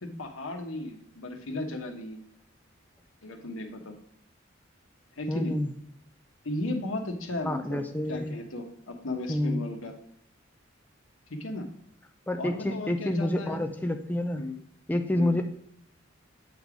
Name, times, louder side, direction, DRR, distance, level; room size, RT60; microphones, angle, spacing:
voice 1, 0.0-2.2 3.2-4.0 5.2-5.5 6.4-7.8 8.1-9.9 11.3-11.7 12.4-13.6 14.4-14.5 15.2-15.4, left 2 dB, 85° left, 4 dB, 1.1 m, -35 dB
voice 2, 5.3-5.7 7.4-8.3 9.3-9.6 12.3-14.4 14.9-15.5, left 1 dB, 10° left, 5 dB, 0.4 m, -28 dB
7.9 x 3.4 x 4.9 m, 0.69 s
head